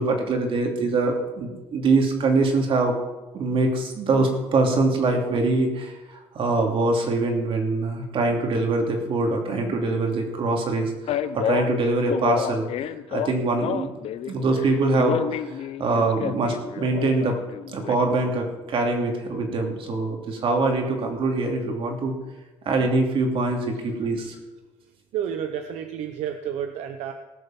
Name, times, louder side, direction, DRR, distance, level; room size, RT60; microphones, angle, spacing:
voice 1, 0.0-3.0 3.3-12.7 13.1-13.9 14.3-17.4 17.7-22.1 22.6-24.4, right 3 dB, 50° right, 2 dB, 2.9 m, -23 dB
Male speech man speaking, 11.1-14.3 14.6-18.0, left 10 dB, 60° left, 0.6 m, -30 dB
voice 2, 25.1-27.1, right 9 dB, 75° right, 7 dB, 0.9 m, -30 dB
18.5 x 6.7 x 6.0 m, 1.1 s
cardioid pair, 115°, 11 cm